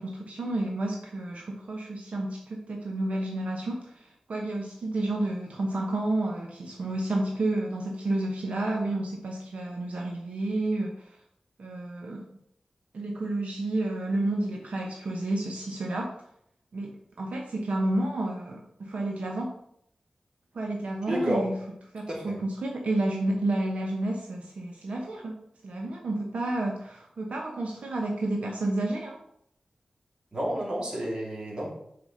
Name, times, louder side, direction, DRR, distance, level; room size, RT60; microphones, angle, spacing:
voice 1, 0.0-11.2 11.6-12.3 12.9-16.1 16.7-19.5 20.5-21.5 21.9-25.4 25.6-29.2, right 2 dB, 80° right, 0 dB, 1.1 m, -30 dB
voice 2, 21.1-21.4 22.1-22.3 30.3-31.7, equal, 40° right, -2 dB, 2.7 m, -30 dB
6.5 x 5.0 x 6.5 m, 0.73 s
wide cardioid pair, 120°, 2 cm